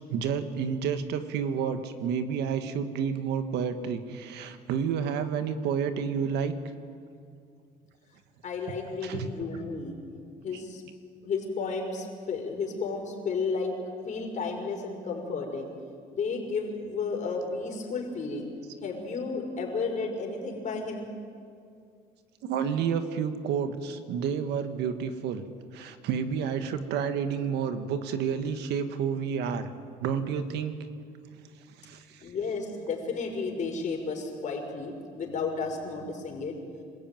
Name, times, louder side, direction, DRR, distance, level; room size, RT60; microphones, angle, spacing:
voice 1, 0.1-6.6 9.0-9.3 10.5-10.6 22.4-25.4 25.7-29.7 30.0-30.8 31.8-32.2, right 7 dB, 80° right, 9 dB, 1.6 m, -30 dB
voice 2, 8.4-10.0 10.4-10.8 11.2-13.7 14.1-15.7 16.1-18.5 18.8-21.1 32.2-36.6, left 4 dB, 45° left, 1 dB, 5.5 m, -32 dB
26.5 x 15.5 x 9.2 m, 2.3 s
cardioid pair, 110°, 17 cm